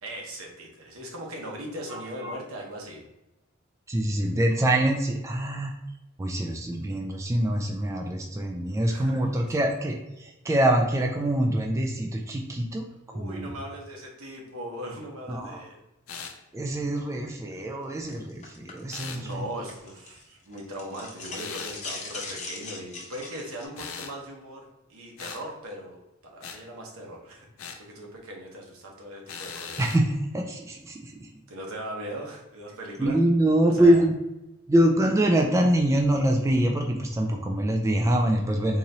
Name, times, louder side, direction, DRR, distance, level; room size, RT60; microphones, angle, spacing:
voice 1, 0.0-3.0 8.9-9.2 9.4-9.7 13.1-15.8 19.1-26.0 26.2-29.8 31.5-33.2 33.7-34.1, right 1 dB, 75° right, -1 dB, 1.0 m, -39 dB
voice 2, 1.9-2.3 3.9-5.7 6.2-12.9 13.1-13.5 15.3-15.6 16.5-19.4 29.8-31.3 33.0-34.2 34.7-38.8, right 1 dB, 15° right, 1 dB, 0.3 m, -24 dB
sound 1, 16.1-16.4 18.9-19.2 21.3-21.8 23.8-24.2 25.2-25.4 26.4-26.6 27.6-27.8 29.3-30.0, left 6 dB, 75° left, 0.5 m, -39 dB
sound 2, 18.1-20.2 20.5-23.7, left 3 dB, 35° left, 0.8 m, -40 dB
3.8 x 3.0 x 2.7 m, 0.96 s
head